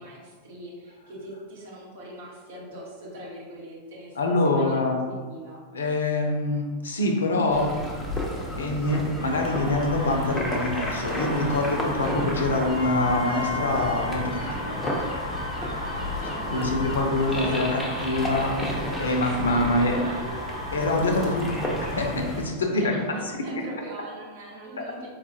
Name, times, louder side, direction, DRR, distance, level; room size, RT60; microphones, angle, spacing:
voice 1, 0.0-5.6 11.8-12.3 15.6-18.3 19.5-20.3 22.6-23.0 23.4-25.1, right 1 dB, 55° right, -4 dB, 1.0 m, -41 dB
voice 2, 4.2-5.0 5.7-7.7 8.6-14.8 16.5-18.6 19.0-20.0 20.7-21.5 21.9-22.9, left 2 dB, 70° left, 2 dB, 0.5 m, -25 dB
sound 1, 7.5-22.4, equal, 10° left, 0.6 m, -32 dB
sound 2, 9.2-22.1, equal, 80° right, 0.8 m, -36 dB
Wind instrument woodwind instrument, 12.7-18.5, left 8 dB, 40° right, 0.6 m, -38 dB
4.1 x 2.4 x 2.7 m, 1.4 s
figure-of-eight pair, 90°, 0 cm